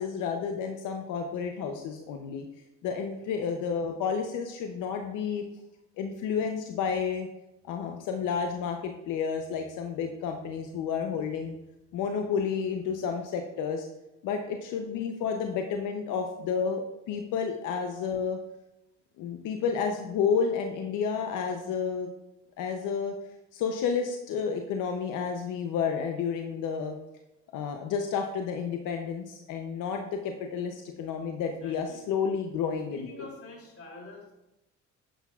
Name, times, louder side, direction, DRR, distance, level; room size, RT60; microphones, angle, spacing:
voice 1, 0.0-2.5 2.8-5.4 6.0-7.3 7.7-11.6 11.9-13.9 14.2-18.4 19.2-22.1 22.6-23.1 23.5-27.0 27.5-33.3, left 6 dB, 90° left, 4 dB, 0.7 m, -31 dB
voice 2, 31.6-32.0 32.9-34.3, left 2 dB, 50° left, -1 dB, 2.9 m, -47 dB
10.0 x 8.0 x 2.4 m, 0.95 s
cardioid pair, 90°, 30 cm